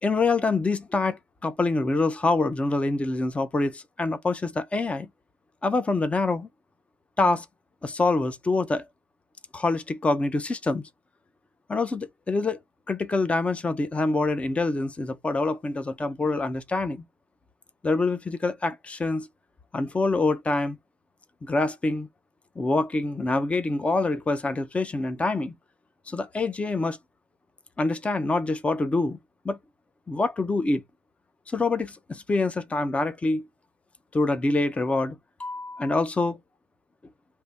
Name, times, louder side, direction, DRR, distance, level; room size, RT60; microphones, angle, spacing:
voice 1, 0.0-5.1 5.6-6.5 7.2-7.5 7.8-8.9 9.5-10.8 11.7-12.6 12.9-17.0 17.8-19.3 19.7-20.8 21.4-22.1 22.6-25.5 26.1-27.0 27.8-29.2 29.4-29.6 30.1-30.8 31.5-33.4 34.1-36.4, left 3 dB, 15° left, 0.6 m, -25 dB
3.6 x 2.7 x 4.1 m
cardioid pair, 130°, 10 cm